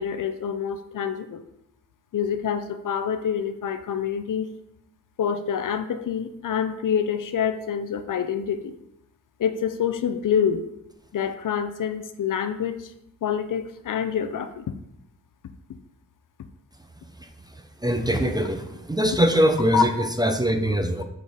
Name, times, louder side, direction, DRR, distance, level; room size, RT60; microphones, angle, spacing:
voice 1, 0.0-1.4 2.1-4.5 5.2-8.7 9.4-10.7 11.1-12.9 13.2-14.7 19.7-20.1, left 7 dB, 70° left, 10 dB, 0.5 m, -26 dB
voice 2, 17.8-21.0, equal, 10° right, 5 dB, 0.4 m, -22 dB
7.3 x 4.0 x 3.4 m, 0.81 s
wide cardioid pair, 145°, 33 cm